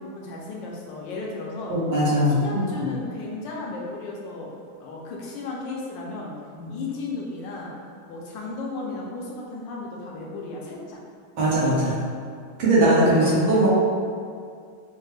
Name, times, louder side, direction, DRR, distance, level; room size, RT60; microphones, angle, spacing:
voice 1, 0.0-1.8 2.3-4.5 4.8-6.4 6.7-7.7 8.1-11.0 13.1-13.7, left 3 dB, 75° left, -2 dB, 1.2 m, -34 dB
voice 2, 1.7-2.9 6.5-6.8 11.4-12.0 12.6-13.7, right 1 dB, 90° right, -9 dB, 2.1 m, -20 dB
5.2 x 2.1 x 3.2 m, 2.2 s
omnidirectional pair, 2.2 m